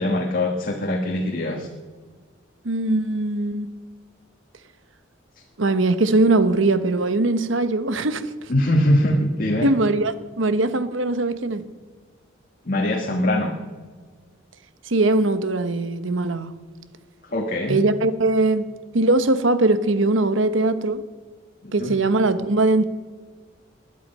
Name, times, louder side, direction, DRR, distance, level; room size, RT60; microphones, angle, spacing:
voice 1, 0.0-1.7 8.5-9.7 12.6-13.5 17.2-17.8 21.6-22.0, left 1 dB, 45° left, 1.5 m, -22 dB
voice 2, 2.6-3.7 5.6-8.3 9.6-11.6 14.9-16.5 17.7-18.7 18.9-21.0 21.7-22.8, right 2 dB, 80° right, 1.1 m, -21 dB
20.5 x 11.5 x 5.5 m
head